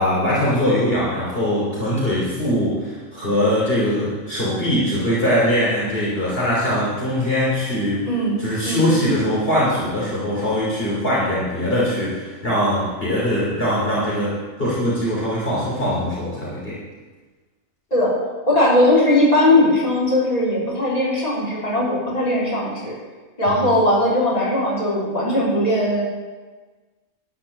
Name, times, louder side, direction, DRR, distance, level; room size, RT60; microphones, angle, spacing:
voice 1, 0.0-8.1 8.4-14.3 14.6-16.8 23.5-23.6, equal, 45° left, -7 dB, 3.5 m, -21 dB
voice 2, 8.1-8.9 17.9-18.1 18.5-22.9 23.4-26.1, left 1 dB, 30° left, -7 dB, 3.9 m, -19 dB
12.0 x 6.1 x 8.8 m, 1.3 s
omnidirectional pair, 1.4 m